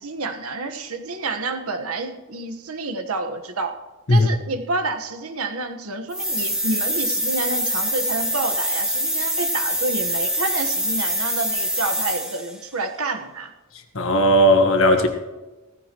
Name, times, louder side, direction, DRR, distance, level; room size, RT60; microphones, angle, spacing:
voice 1, 0.0-3.8 4.1-13.5, right 3 dB, 90° right, 1.3 m, -29 dB
sound 1, 6.1-12.5, equal, 5° right, 1.5 m, -24 dB
voice 2, 13.9-15.1, equal, 70° left, 1.5 m, -16 dB
16.0 x 14.5 x 3.0 m
head